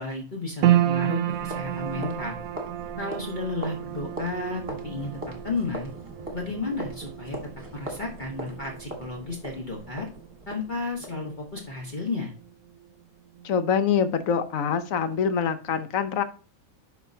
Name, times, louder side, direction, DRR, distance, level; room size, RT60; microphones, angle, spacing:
voice 1, 0.0-2.4 3.0-5.9 6.3-7.4 7.7-10.1 10.5-12.3, left 3 dB, 35° left, -1 dB, 1.3 m, -33 dB
sound 1, 0.6-13.0 13.3-14.2 14.7-14.8, right 12 dB, 90° right, 1.0 m, -31 dB
sound 2, 1.3-11.9, right 1 dB, 25° right, 1.5 m, -41 dB
voice 2, 13.4-16.2, left 7 dB, 75° left, 11 dB, 1.1 m, -25 dB
11.0 x 4.2 x 2.7 m, 0.38 s
omnidirectional pair, 1.4 m